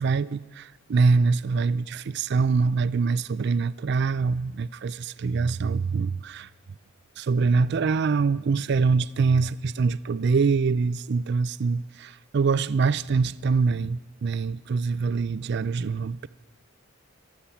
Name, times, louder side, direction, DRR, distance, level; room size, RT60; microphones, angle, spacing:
voice 1, 0.0-6.5 7.2-16.3, right 4 dB, 50° right, 0.3 m, -24 dB
15.5 x 12.0 x 5.7 m
head